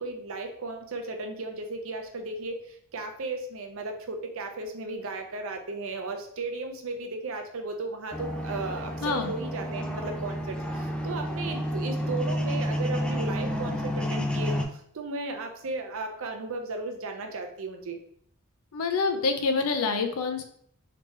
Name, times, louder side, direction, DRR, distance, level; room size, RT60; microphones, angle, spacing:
voice 1, 0.0-14.6 14.9-18.0, right 3 dB, 65° right, 4 dB, 0.6 m, -35 dB
sound 1, 8.1-14.6, equal, 5° left, 0.3 m, -30 dB
voice 2, 9.0-9.3 18.7-20.4, left 4 dB, 90° left, 6 dB, 0.5 m, -26 dB
3.4 x 2.9 x 3.2 m, 0.64 s
head